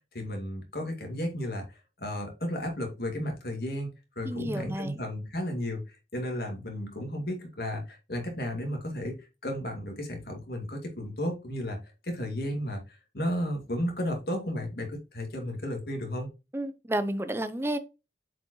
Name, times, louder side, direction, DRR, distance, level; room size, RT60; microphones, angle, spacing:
voice 1, 0.1-1.6 2.0-3.9 4.2-5.8 6.1-9.1 9.4-11.8 12.0-12.8 13.1-16.3, equal, 60° left, 2.3 m, -33 dB
voice 2, 4.2-5.0 16.5-17.8, right 1 dB, 15° right, 0.6 m, -31 dB
7.4 x 5.0 x 3.0 m
head